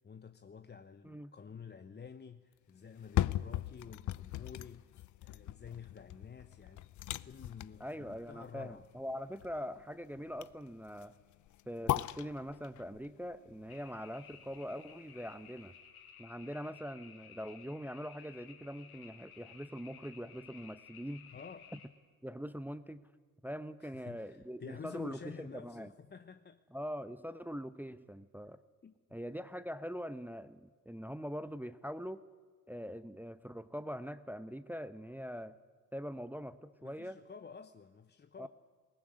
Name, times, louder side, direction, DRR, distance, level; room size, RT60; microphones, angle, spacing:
voice 1, 0.0-4.9 5.2-6.9 7.1-8.9 21.3-21.7 23.8-26.6 28.8-28.9 36.8-38.5, left 6 dB, 25° left, 0.9 m, -50 dB
sound 1, 2.9-14.9 15.3-15.4, left 14 dB, 45° left, 0.6 m, -39 dB
voice 2, 7.8-11.1 11.7-15.7 16.2-21.3 21.7-21.8 22.2-23.0 23.4-25.9 26.7-28.6 29.1-32.2 32.7-35.5 35.9-37.2 38.4-38.5, equal, 5° right, 0.8 m, -43 dB
sound 2, 13.7-21.9, left 7 dB, 85° left, 1.8 m, -56 dB
21.0 x 19.0 x 9.7 m
figure-of-eight pair, 50°, 43 cm